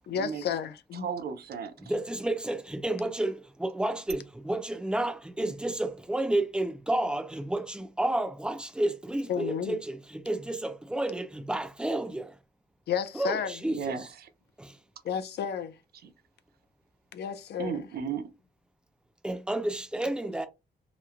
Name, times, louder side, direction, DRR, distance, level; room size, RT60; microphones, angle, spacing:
voice 1, 0.1-1.1 9.3-9.8 12.9-13.6 15.0-15.7 17.1-17.9, left 7 dB, 70° left, 0.5 m, -32 dB
voice 2, 0.9-1.7 13.7-14.3 16.0-16.1 17.6-18.3, right 6 dB, 65° right, 0.6 m, -35 dB
voice 3, 1.8-12.3 13.1-14.1 14.6-14.8 19.2-20.5, right 1 dB, 5° right, 0.4 m, -31 dB
3.0 x 2.1 x 2.4 m
wide cardioid pair, 160°, 17 cm